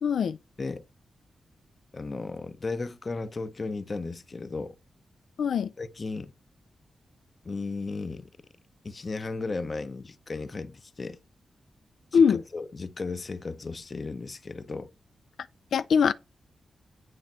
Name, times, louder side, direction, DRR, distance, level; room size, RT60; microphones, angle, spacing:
voice 1, 0.0-0.4 5.4-5.7 12.1-12.4 15.7-16.1, left 6 dB, 80° left, 0.4 m, -22 dB
voice 2, 1.9-4.7 5.8-6.3 7.4-8.3 8.8-11.2 12.1-14.9, left 3 dB, 30° left, 0.7 m, -35 dB
9.7 x 5.4 x 4.4 m
wide cardioid pair, 165°, 0 cm